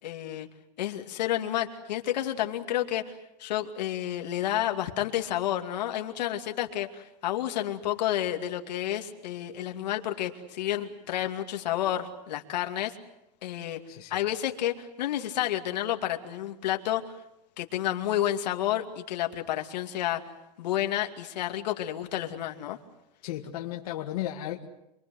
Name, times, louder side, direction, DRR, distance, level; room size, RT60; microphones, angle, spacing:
voice 1, 0.0-0.5 0.8-3.1 3.4-13.0 13.4-13.8 14.1-17.1 17.6-20.2 20.6-22.8, left 12 dB, 85° left, 4 dB, 2.5 m, -30 dB
voice 2, 13.9-14.2 23.2-24.7, left 13 dB, 60° left, 2 dB, 1.9 m, -35 dB
27.5 x 23.5 x 7.9 m, 0.87 s
supercardioid pair, 170°, 21 cm